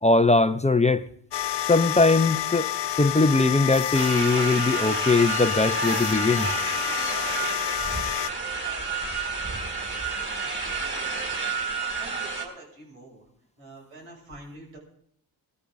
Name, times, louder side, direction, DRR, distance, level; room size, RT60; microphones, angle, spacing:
voice 1, 0.0-1.1 1.7-2.7 3.0-6.5, left 3 dB, 15° left, 0.8 m, -21 dB
sound 1, 1.3-8.3, left 12 dB, 60° left, 0.8 m, -29 dB
sound 2, 3.9-12.5, right 4 dB, 25° right, 4.9 m, -30 dB
voice 2, 12.0-13.3 13.6-14.8, right 2 dB, 80° right, 7.0 m, -45 dB
20.0 x 14.0 x 3.9 m
hypercardioid pair, 40°, 49 cm